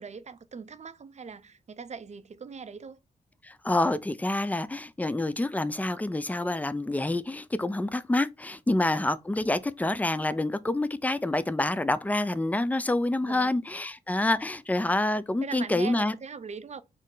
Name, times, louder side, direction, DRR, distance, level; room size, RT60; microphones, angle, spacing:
voice 1, 0.0-3.0 8.7-8.8 13.2-13.6 15.4-16.8, right 5 dB, 45° right, 0.5 m, -41 dB
voice 2, 3.4-16.1, left 2 dB, 10° left, 0.4 m, -27 dB
4.3 x 2.0 x 3.8 m
cardioid pair, 50°, 17 cm